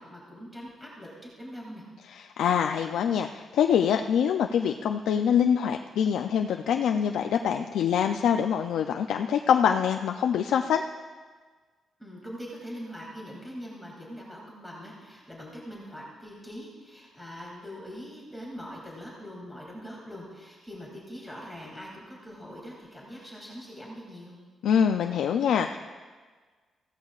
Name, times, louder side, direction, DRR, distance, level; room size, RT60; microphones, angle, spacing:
voice 1, 0.0-1.9 12.0-24.4, equal, ahead, -4 dB, 2.5 m, -42 dB
voice 2, 2.1-10.8 24.6-25.8, left 8 dB, 85° left, 5 dB, 0.4 m, -25 dB
15.5 x 13.0 x 2.4 m, 1.5 s
cardioid pair, 120°, 0 cm